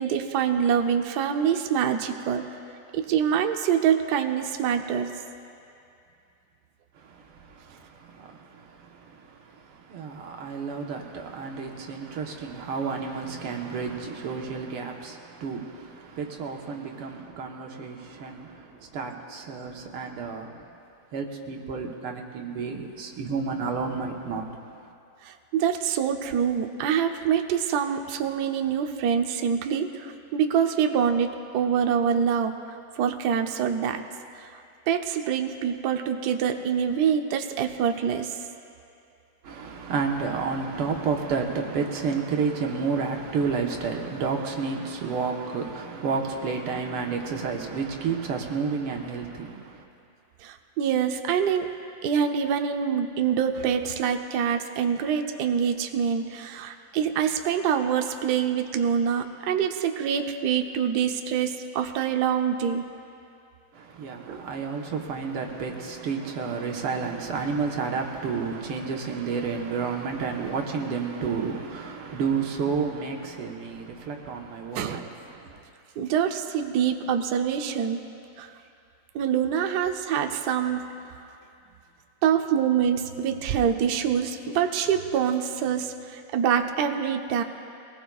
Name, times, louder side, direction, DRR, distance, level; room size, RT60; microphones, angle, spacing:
voice 1, 0.0-2.4 2.9-5.1 25.2-32.5 33.0-34.0 34.3-34.5 34.9-38.4 50.4-51.7 52.0-62.8 64.3-64.5 74.7-75.1 76.0-78.0 78.4-78.5 79.1-80.8 82.2-87.4, right 8 dB, 65° right, 1.1 m, -25 dB
voice 2, 7.0-20.7 21.1-24.6 39.4-49.9 63.7-75.6, right 5 dB, 85° right, 2.1 m, -31 dB
22.5 x 19.5 x 2.3 m
omnidirectional pair, 2.4 m